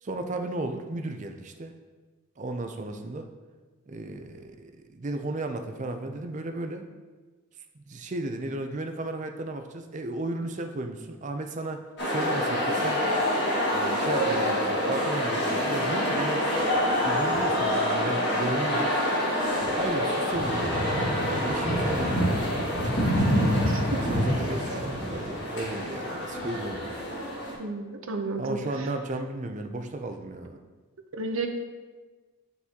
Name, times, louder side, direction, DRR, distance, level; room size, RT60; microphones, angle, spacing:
voice 1, 0.0-1.7 2.4-3.3 3.9-6.9 7.9-13.0 13.7-16.4 17.0-18.9 19.7-20.8 21.3-23.2 24.1-26.9 28.4-30.6, right 2 dB, 35° right, 6 dB, 0.4 m, -34 dB
sound 1, 12.0-27.5, equal, 55° left, 1.8 m, -26 dB
voice 2, 23.7-24.1 27.6-28.6 31.1-31.5, right 3 dB, 70° right, 5 dB, 0.7 m, -32 dB
9.5 x 4.0 x 2.9 m, 1.3 s
head